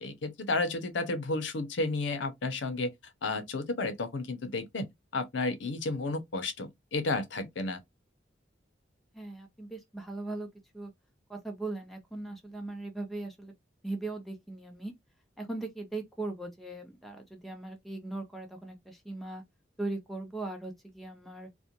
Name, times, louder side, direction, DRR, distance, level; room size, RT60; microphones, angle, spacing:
voice 1, 0.0-2.9 3.2-4.9 5.1-7.8, left 2 dB, 85° left, 0.6 m, -32 dB
voice 2, 9.1-10.5 10.7-10.9 11.3-13.5 13.8-14.9 15.4-19.4 19.8-21.5, right 2 dB, ahead, 0.5 m, -39 dB
2.4 x 2.1 x 2.8 m
head